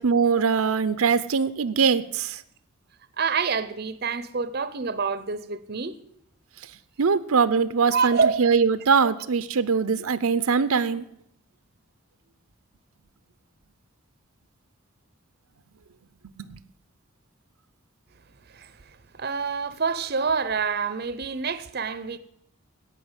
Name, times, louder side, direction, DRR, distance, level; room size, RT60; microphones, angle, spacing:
voice 1, 0.0-2.4 7.0-11.0 16.5-16.6, right 5 dB, 85° right, 0.6 m, -22 dB
voice 2, 3.2-6.0 7.9-8.5 18.5-18.7 19.1-22.2, right 5 dB, 45° right, 0.7 m, -27 dB
17.0 x 5.7 x 8.1 m
head